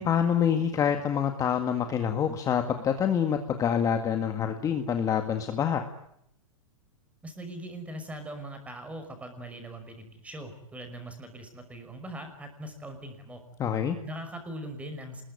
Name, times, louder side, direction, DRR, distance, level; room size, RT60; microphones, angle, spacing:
voice 1, 0.0-5.9 13.6-14.0, left 8 dB, 20° left, 6 dB, 1.9 m, -26 dB
voice 2, 7.2-13.4 14.0-15.2, right 1 dB, 10° right, 7 dB, 5.7 m, -41 dB
27.0 x 21.5 x 9.6 m, 0.76 s
hypercardioid pair, 150°, 17 cm